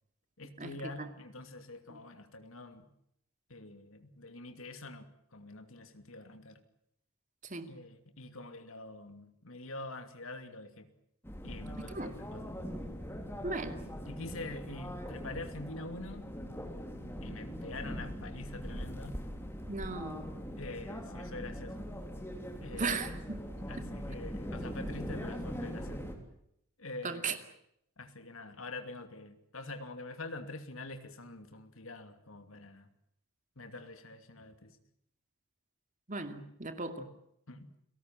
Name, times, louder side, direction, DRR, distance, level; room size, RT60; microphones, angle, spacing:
voice 1, 0.4-2.9 3.5-6.6 7.7-10.9 11.4-12.5 14.1-16.2 17.2-19.2 20.6-22.0 22.6-23.0 23.7-26.1 26.8-27.4 28.0-32.9 33.6-34.8 37.5-37.7, left 2 dB, 65° left, 8 dB, 2.7 m, -45 dB
sound 1, 11.2-26.2, equal, 10° left, 3.4 m, -41 dB
voice 2, 11.8-12.1 13.4-13.8 19.7-20.3 22.7-23.4 23.8-23.9 27.0-27.4 36.1-37.1, right 3 dB, 35° right, 8 dB, 2.4 m, -37 dB
30.0 x 18.5 x 7.6 m, 0.75 s
head